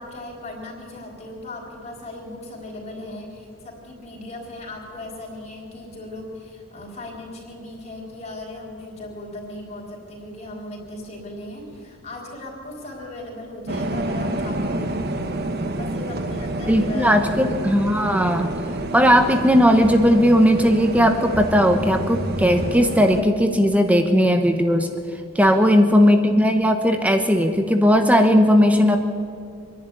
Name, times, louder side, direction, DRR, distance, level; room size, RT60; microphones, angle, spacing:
voice 1, 0.0-14.9 15.6-17.2 25.7-26.0, left 2 dB, 30° left, -1 dB, 4.1 m, -37 dB
sound 1, 13.7-23.2, right 1 dB, 45° right, 1.4 m, -28 dB
voice 2, 16.7-18.5 18.9-24.9 25.3-29.0, equal, 5° right, 5 dB, 1.0 m, -17 dB
25.5 x 11.0 x 9.8 m, 2.4 s
head